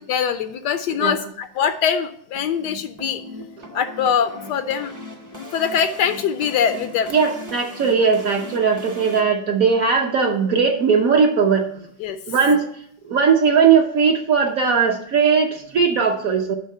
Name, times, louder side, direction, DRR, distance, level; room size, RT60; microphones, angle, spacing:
voice 1, 0.1-3.2 3.7-4.9 5.3-7.1 12.0-12.2, left 7 dB, 75° left, 10 dB, 1.1 m, -23 dB
sound 1, 2.3-9.2, left 1 dB, 25° right, 0.4 m, -39 dB
voice 2, 7.1-11.9 12.3-12.6 13.0-16.5, right 6 dB, 60° right, 3 dB, 1.0 m, -18 dB
10.5 x 3.7 x 6.4 m, 0.66 s
omnidirectional pair, 2.1 m